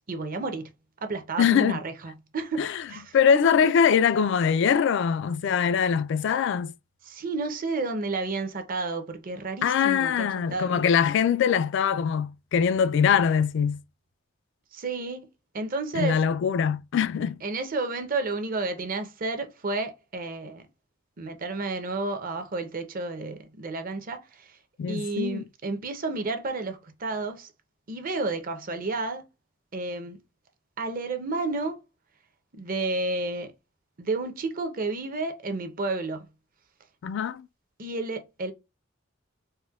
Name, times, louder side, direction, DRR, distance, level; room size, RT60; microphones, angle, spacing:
voice 1, 0.1-0.7 1.0-3.2 3.6-3.7 7.1-10.8 14.7-15.3 15.5-16.2 17.4-20.6 21.2-24.6 24.9-27.5 27.9-29.2 29.7-30.2 30.8-31.8 32.5-33.5 34.0-36.3 37.8-38.5, right 3 dB, 45° right, 0.7 m, -31 dB
voice 2, 1.4-1.8 2.6-2.8 3.1-6.7 9.6-13.8 15.9-17.4 24.8-25.4 37.0-37.5, left 7 dB, 65° left, 0.3 m, -23 dB
4.2 x 2.1 x 2.3 m
head